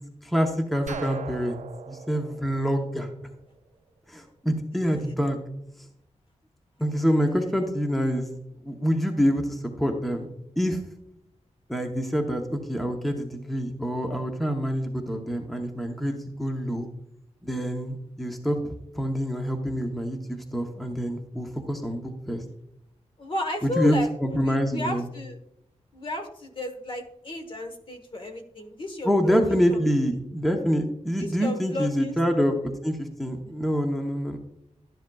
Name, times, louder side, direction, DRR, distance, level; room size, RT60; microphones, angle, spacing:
voice 1, 0.2-1.6 1.9-3.1 4.1-5.4 6.8-8.3 8.6-10.3 10.6-10.8 11.7-16.9 17.4-22.4 23.6-25.1 29.0-32.6 32.8-34.4, equal, ahead, 3 dB, 0.8 m, -26 dB
sound 1, 0.9-3.7, right 6 dB, 85° right, 0.5 m, -39 dB
voice 2, 23.2-25.4 25.9-29.8 31.2-32.1, left 1 dB, 45° left, 6 dB, 1.2 m, -33 dB
12.0 x 10.0 x 2.3 m, 0.80 s
wide cardioid pair, 175°, 12 cm